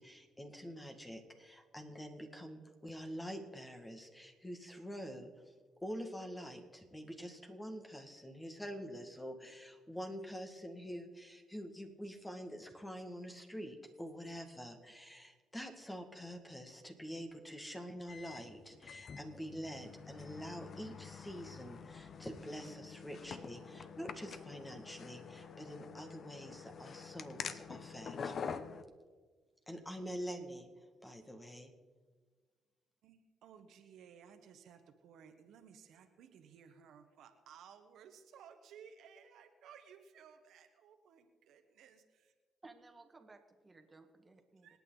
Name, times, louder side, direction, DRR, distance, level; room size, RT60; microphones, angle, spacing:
voice 1, 0.0-5.5 5.8-28.4 29.7-30.7 31.0-31.7, equal, 10° left, 4 dB, 1.9 m, -46 dB
sound 1, 18.1-28.8, left 6 dB, 55° left, 0.8 m, -47 dB
voice 2, 33.0-42.3 44.6-44.8, right 7 dB, 80° right, 6 dB, 1.4 m, -58 dB
voice 3, 42.6-44.8, right 3 dB, 25° right, 5 dB, 1.8 m, -58 dB
26.5 x 9.1 x 4.0 m, 1.5 s
cardioid pair, 90°, 0 cm